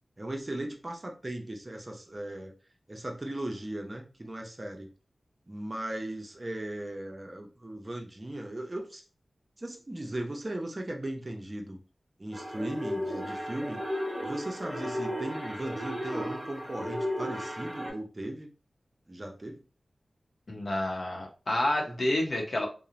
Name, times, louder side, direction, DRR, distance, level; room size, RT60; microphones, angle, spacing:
voice 1, 0.2-2.5 2.9-4.9 5.5-9.0 9.6-11.8 12.2-13.8 14.2-18.5 19.1-19.6 21.9-22.0, right 1 dB, 35° right, 3 dB, 0.5 m, -37 dB
sound 1, 12.3-17.9, equal, 10° right, 1.0 m, -34 dB
voice 2, 20.5-22.7, left 1 dB, 65° left, 0 dB, 0.7 m, -29 dB
2.8 x 2.0 x 2.4 m, 0.35 s
wide cardioid pair, 60°, 0 cm